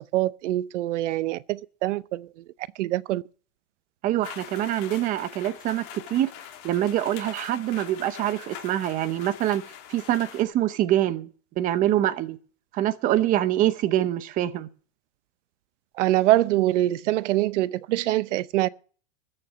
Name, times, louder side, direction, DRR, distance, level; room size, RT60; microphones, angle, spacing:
voice 1, 0.0-2.3 2.8-3.2 16.0-18.7, right 15 dB, 70° right, 0.7 m, -24 dB
voice 2, 4.0-6.3 6.6-9.6 9.9-11.3 11.6-12.4 12.7-14.7, right 13 dB, 20° right, 0.7 m, -25 dB
sound 1, 4.2-10.4, left 10 dB, 35° left, 2.9 m, -43 dB
14.0 x 6.6 x 8.7 m
supercardioid pair, 165°, 37 cm